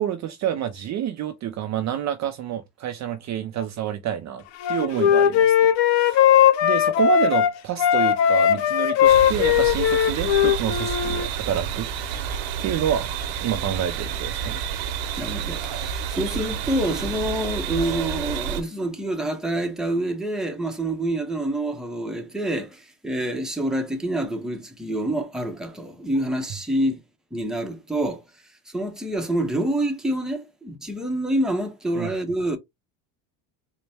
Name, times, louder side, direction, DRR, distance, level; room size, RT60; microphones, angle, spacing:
voice 1, 0.0-4.4 4.7-13.1 13.4-14.6 32.0-32.1, right 10 dB, 40° right, 0.5 m, -28 dB
Wind instrument woodwind instrument, 4.6-7.5 7.8-11.3, left 9 dB, 85° left, 0.8 m, -18 dB
Costa Rica cloud forest at night, 9.0-18.6, right 8 dB, 70° right, 1.0 m, -29 dB
voice 2, 15.2-27.0 27.3-28.2 28.7-32.6, right 1 dB, ahead, 0.7 m, -27 dB
4.1 x 2.1 x 3.4 m
cardioid pair, 130°, 46 cm